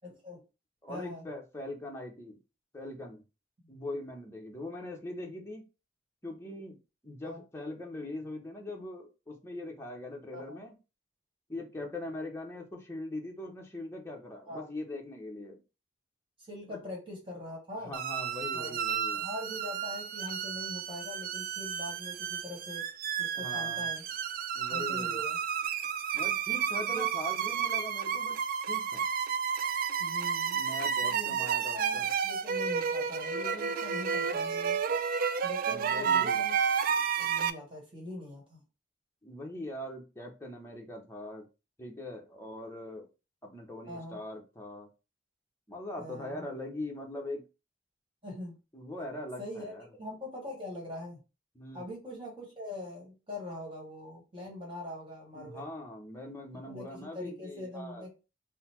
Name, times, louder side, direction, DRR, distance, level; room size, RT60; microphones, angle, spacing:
voice 1, 0.0-0.4 0.9-1.2 7.2-7.4 10.3-10.6 14.5-14.7 16.5-18.0 18.5-18.8 19.1-22.9 23.2-24.1 24.7-25.4 26.9-27.1 30.0-30.6 31.0-34.8 35.4-36.6 37.2-38.6 43.9-44.2 46.0-46.5 48.2-48.6 49.4-49.7 50.0-51.2 51.7-55.7 56.7-58.1, left 1 dB, 30° right, -2 dB, 1.4 m, -42 dB
voice 2, 0.8-2.4 2.7-3.2 3.7-5.6 6.2-6.8 7.0-10.7 11.5-15.6 16.7-16.8 17.8-19.2 23.3-23.9 24.5-25.2 26.1-28.4 28.7-29.0 30.5-32.1 35.7-36.4 39.2-41.4 41.8-43.1 43.4-44.9 45.7-47.4 48.7-49.9 51.6-51.9 55.3-58.1, left 1 dB, 15° left, 1 dB, 0.8 m, -41 dB
sound 1, 17.9-37.5, right 7 dB, 50° right, 0.3 m, -31 dB
3.8 x 2.0 x 4.3 m, 0.30 s
head